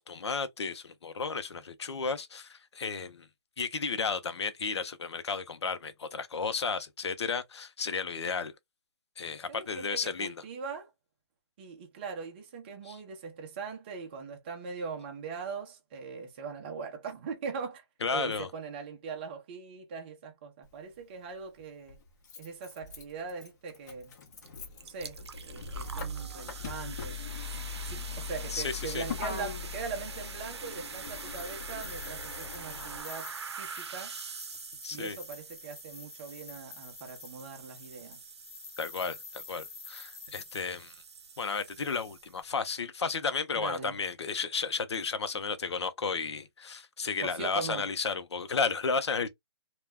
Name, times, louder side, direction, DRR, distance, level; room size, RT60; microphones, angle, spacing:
voice 1, 0.0-3.3 3.6-8.5 9.2-10.3 12.8-13.0 18.0-18.5 28.5-29.0 34.8-35.2 38.8-41.0 41.4-49.3, left 5 dB, 90° left, 0.6 m, -33 dB
voice 2, 9.5-10.9 11.6-17.8 18.1-22.0 22.4-24.1 24.8-27.2 27.5-34.2 34.9-38.2 43.6-44.0 47.2-47.8, right 5 dB, 25° right, 0.5 m, -41 dB
Motor vehicle (road), 20.6-20.7 21.9-33.0, left 5 dB, 40° left, 0.8 m, -41 dB
sound 1, 24.4-24.5 24.8-42.5, right 5 dB, 80° right, 0.6 m, -45 dB
sound 2, 30.8-40.6, left 6 dB, 65° left, 1.1 m, -49 dB
2.2 x 2.1 x 3.3 m
hypercardioid pair, 165°, 14 cm